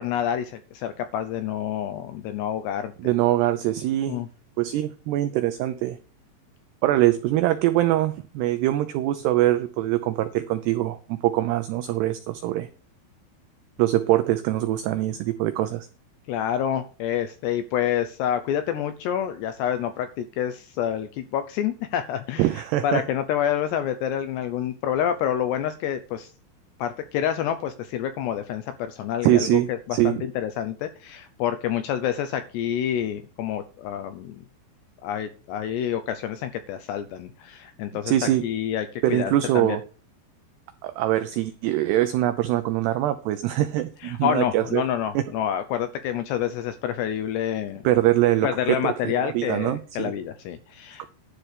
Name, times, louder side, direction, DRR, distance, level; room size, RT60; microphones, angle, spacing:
voice 1, 0.0-3.1 4.1-4.3 16.3-22.5 22.8-26.3 26.8-34.4 35.0-38.1 38.4-39.8 44.0-47.9 48.4-51.0, left 10 dB, 80° left, 10 dB, 2.5 m, -28 dB
voice 2, 3.0-4.2 4.6-6.0 6.8-12.7 13.8-15.9 22.4-23.0 29.2-30.2 38.1-38.5 39.0-39.8 40.8-44.8 45.2-45.3 47.8-50.1 51.0-51.1, right 14 dB, 85° right, 9 dB, 2.3 m, -23 dB
11.5 x 4.5 x 8.3 m, 0.35 s
omnidirectional pair, 5.6 m